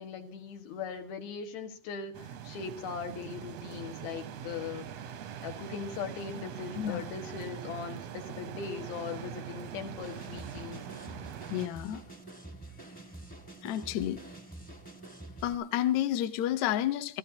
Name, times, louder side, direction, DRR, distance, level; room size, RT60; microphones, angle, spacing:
voice 1, 0.0-4.9 5.4-10.8, left 6 dB, 85° left, 4 dB, 3.6 m, -39 dB
sound 1, 2.1-11.7, right 8 dB, 75° right, 1.4 m, -43 dB
sound 2, 10.0-15.5, right 2 dB, 5° left, 0.7 m, -47 dB
voice 2, 11.5-12.0 13.6-14.2 15.4-17.2, left 12 dB, 70° left, 10 dB, 1.8 m, -30 dB
27.0 x 15.0 x 2.9 m, 0.39 s
omnidirectional pair, 4.2 m